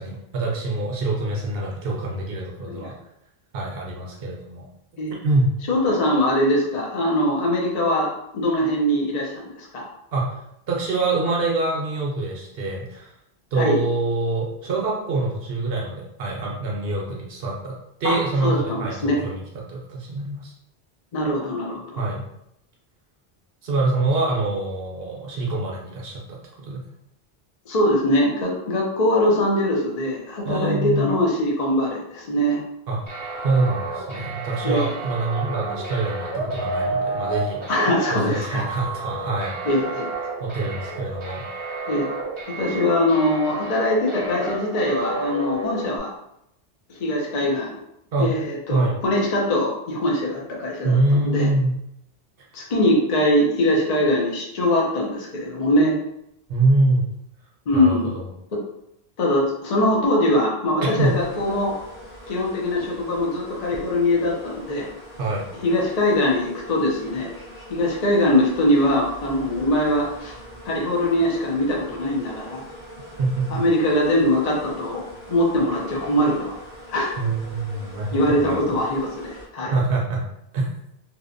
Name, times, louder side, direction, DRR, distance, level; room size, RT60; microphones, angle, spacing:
voice 1, 0.0-2.9 3.5-4.6 5.2-5.5 10.1-10.4 10.7-13.1 13.5-17.7 18.0-19.4 19.7-20.5 22.0-22.2 23.6-26.4 26.6-26.8 30.4-31.0 32.9-33.1 33.4-37.7 38.1-39.7 40.4-41.4 48.1-48.3 48.7-49.0 50.8-51.7 56.5-57.0 57.7-58.3 60.8-61.2 65.2-65.4 73.2-73.6 77.2-78.7 79.7-80.2 80.5-80.7, right 2 dB, 70° right, -2 dB, 0.8 m, -25 dB
voice 2, 5.7-9.8 13.6-13.8 18.0-18.2 18.4-19.2 21.1-22.0 27.7-32.6 34.6-34.9 37.7-38.6 39.6-40.1 41.9-42.1 42.6-46.1 46.9-47.8 48.2-51.5 52.5-55.9 57.7-58.2 59.2-61.7 62.3-64.9 65.6-67.3 67.7-70.4 70.7-72.6 73.5-76.5 76.9-77.3 78.1-79.7, left 1 dB, 45° left, -3 dB, 0.6 m, -22 dB
sound 1, 33.1-46.0, right 2 dB, 40° right, 0.5 m, -31 dB
sound 2, 61.0-79.5, equal, 75° left, 1.2 m, -42 dB
2.7 x 2.1 x 2.5 m, 0.79 s
omnidirectional pair, 1.1 m